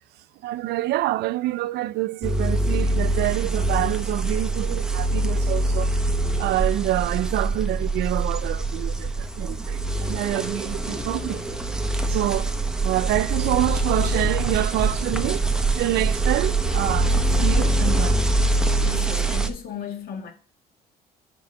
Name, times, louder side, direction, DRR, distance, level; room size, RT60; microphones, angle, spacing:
voice 1, 0.4-5.9 6.4-11.4 12.1-12.6 12.8-15.5 15.8-18.2, right 15 dB, 75° right, 0.4 m, -27 dB
sound 1, 2.2-19.5, right 2 dB, 5° right, 0.8 m, -24 dB
voice 2, 18.8-20.3, left 8 dB, 65° left, 1.6 m, -35 dB
5.2 x 4.5 x 6.2 m
cardioid pair, 110°, 17 cm